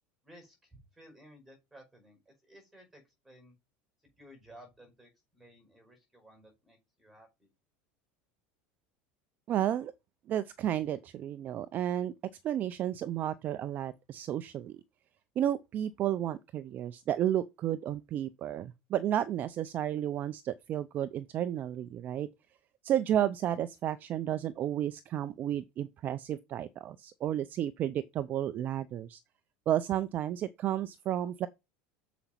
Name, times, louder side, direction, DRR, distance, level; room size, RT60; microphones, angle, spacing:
voice 1, 0.2-3.5 4.2-7.5, equal, 5° right, 5.0 m, -56 dB
voice 2, 9.5-9.9 10.3-12.1 12.4-14.8 15.4-22.3 22.8-29.2 29.7-31.5, right 11 dB, 35° right, 0.5 m, -32 dB
7.0 x 5.0 x 5.7 m
supercardioid pair, 145°, 5 cm